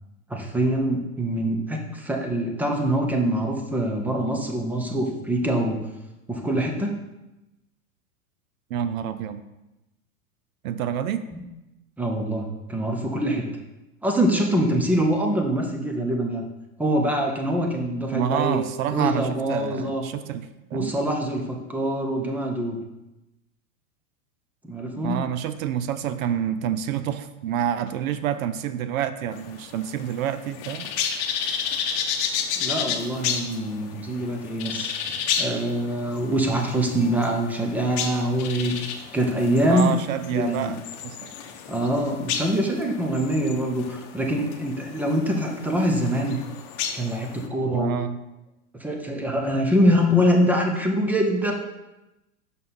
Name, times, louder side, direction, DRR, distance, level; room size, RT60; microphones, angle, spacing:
voice 1, 0.3-5.8 6.3-6.9 11.3-11.4 12.0-13.4 14.0-16.5 16.8-18.6 18.9-20.0 20.7-22.8 24.6-25.2 32.6-34.9 35.4-38.8 39.1-39.9 40.3-40.7 41.7-46.4 46.9-48.0 48.8-51.5, equal, 5° right, 2 dB, 0.4 m, -24 dB
voice 2, 8.7-9.4 10.6-11.2 18.1-20.4 20.7-20.9 25.0-30.9 31.4-31.7 39.7-40.8 41.0-41.3 47.7-48.2, right 9 dB, 70° right, 12 dB, 0.6 m, -28 dB
sound 1, 29.3-47.5, left 7 dB, 40° left, 0.9 m, -32 dB
5.8 x 5.5 x 4.0 m, 0.98 s
hypercardioid pair, 125°, 43 cm